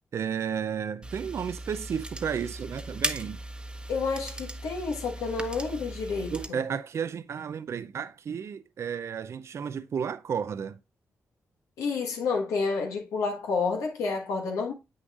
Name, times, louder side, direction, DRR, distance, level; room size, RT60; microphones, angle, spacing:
voice 1, 0.1-3.4 6.3-10.8, right 7 dB, 60° right, 0.4 m, -32 dB
sound 1, 1.0-6.5, right 1 dB, 20° right, 1.0 m, -37 dB
voice 2, 3.9-6.6 11.8-14.7, left 4 dB, 90° left, 1.3 m, -29 dB
7.8 x 6.3 x 2.4 m
supercardioid pair, 50°, 5 cm